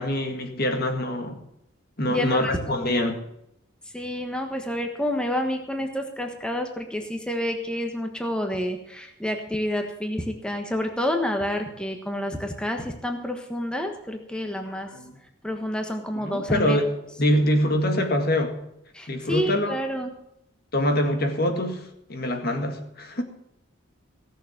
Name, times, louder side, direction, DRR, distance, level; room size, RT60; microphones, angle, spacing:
voice 1, 0.0-1.4 2.0-3.2 14.9-15.2 16.2-16.9 17.2-18.6 19.1-19.8 20.7-23.2, left 1 dB, 50° left, 5 dB, 1.9 m, -24 dB
voice 2, 2.1-3.2 3.9-15.0 15.4-16.8 18.9-20.1, equal, 5° left, 4 dB, 1.3 m, -29 dB
17.0 x 7.0 x 7.2 m, 0.80 s
head